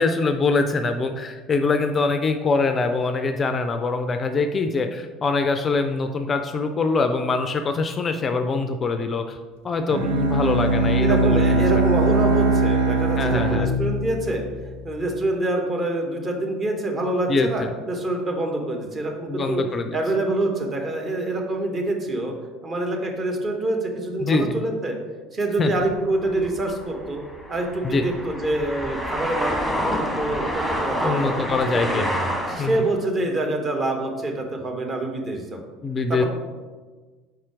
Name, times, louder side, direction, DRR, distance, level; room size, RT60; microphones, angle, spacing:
voice 1, 0.0-9.4 9.6-11.7 13.2-13.7 17.3-17.7 19.3-20.0 24.2-24.6 25.6-25.7 27.8-28.0 31.0-32.2 32.6-32.9 35.8-36.2, left 3 dB, 30° left, 7 dB, 0.4 m, -23 dB
Bowed string instrument, 9.9-14.9, right 3 dB, 70° right, 0.6 m, -21 dB
voice 2, 11.0-14.4 14.8-19.6 19.9-22.3 22.6-25.0 25.3-27.2 27.5-32.1 32.5-35.6 36.1-36.2, right 2 dB, 30° right, 2 dB, 1.1 m, -26 dB
sound 1, 25.8-32.9, equal, ahead, 1.1 m, -28 dB
4.7 x 4.3 x 4.7 m, 1.4 s
figure-of-eight pair, 65°, 0 cm